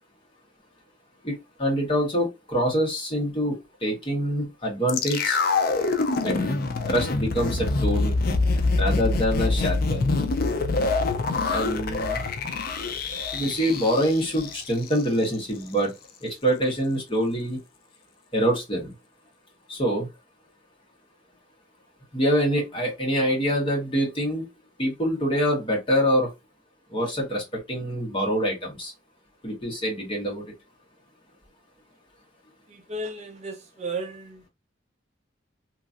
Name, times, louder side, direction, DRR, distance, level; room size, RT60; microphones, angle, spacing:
voice 1, 1.2-5.4 6.2-6.6 6.9-8.1 8.8-10.2 11.5-12.2 13.3-15.9 16.2-17.6 18.3-18.9 19.7-20.1 22.1-24.4 24.8-26.3 26.9-28.9 29.4-30.4, equal, 30° left, 1.2 m, -25 dB
sound 1, 4.9-15.0 15.3-15.4, left 3 dB, 50° left, 0.4 m, -25 dB
voice 2, 32.7-34.4, right 2 dB, 35° right, 0.5 m, -34 dB
2.9 x 2.6 x 2.4 m
head